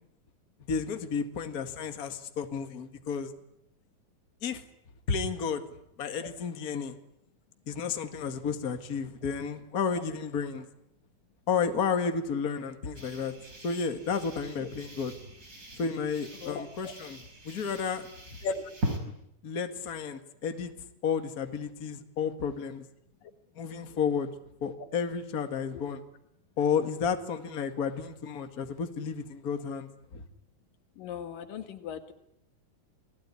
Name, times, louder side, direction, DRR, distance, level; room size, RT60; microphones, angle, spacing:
voice 1, 0.7-3.3 4.4-4.6 5.1-5.6 6.0-7.0 7.7-10.7 11.5-13.3 13.6-15.1 15.8-18.1 19.4-20.7 21.0-22.9 23.6-24.3 24.6-26.0 26.6-30.2, left 6 dB, 35° left, 7 dB, 2.0 m, -32 dB
sound 1, 12.9-19.0, right 1 dB, 25° right, 5.3 m, -40 dB
voice 2, 16.4-16.9 18.4-18.6 23.2-23.3 31.0-32.1, left 5 dB, 90° left, 8 dB, 3.5 m, -37 dB
28.5 x 20.5 x 9.8 m, 0.78 s
omnidirectional pair, 3.8 m